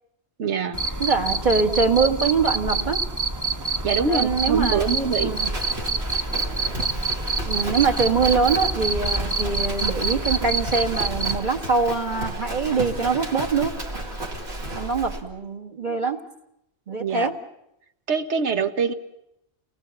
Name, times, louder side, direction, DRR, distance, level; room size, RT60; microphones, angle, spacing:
voice 1, 0.4-1.0 3.8-5.4 15.9-16.0 17.0-17.3 18.1-18.9, right 5 dB, 85° right, 9 dB, 1.5 m, -25 dB
Cricket, 0.7-11.4, right 3 dB, 15° right, 1.0 m, -27 dB
voice 2, 1.0-3.0 4.0-4.9 5.2-5.5 7.4-13.7 14.7-16.2 16.9-17.3, right 4 dB, 45° right, 4 dB, 1.8 m, -23 dB
Livestock farm animals working animals, 2.2-15.2, right 1 dB, 65° right, 2.8 m, -33 dB
29.5 x 19.5 x 7.0 m, 0.81 s
omnidirectional pair, 1.2 m